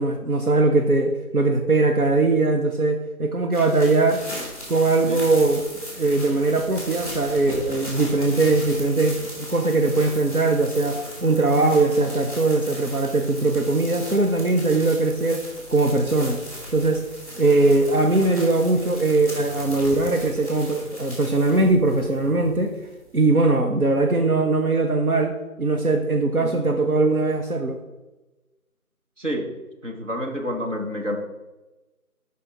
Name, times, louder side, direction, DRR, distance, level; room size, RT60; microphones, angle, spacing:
voice 1, 0.0-4.2 4.7-5.6 5.9-16.4 16.7-17.0 17.4-22.7 23.1-27.8, right 3 dB, 70° right, 3 dB, 0.9 m, -21 dB
sound 1, 3.5-23.3, equal, 25° right, 2.2 m, -37 dB
voice 2, 26.4-26.8 29.2-29.5 29.8-31.2, equal, 55° right, 1 dB, 1.4 m, -29 dB
6.6 x 5.3 x 5.1 m, 1.1 s
figure-of-eight pair, 175°, 44 cm